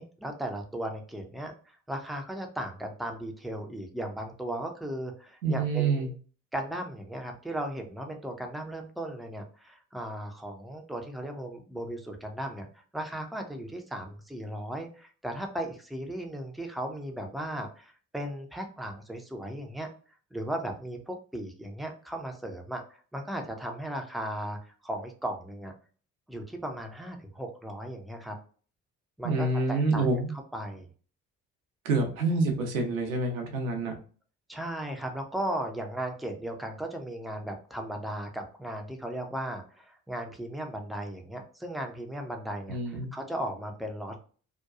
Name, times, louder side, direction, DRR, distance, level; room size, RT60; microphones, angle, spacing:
voice 1, 0.0-6.1 6.5-12.7 12.9-19.9 20.3-22.8 23.1-25.7 26.3-28.4 29.2-30.1 30.5-30.9 34.5-44.2, right 1 dB, ahead, 3 dB, 0.5 m, -36 dB
voice 2, 5.4-6.1 29.2-30.3 31.8-33.9 42.7-43.1, right 3 dB, 80° right, 3 dB, 0.7 m, -27 dB
2.8 x 2.2 x 2.3 m, 0.41 s
figure-of-eight pair, 45°, 41 cm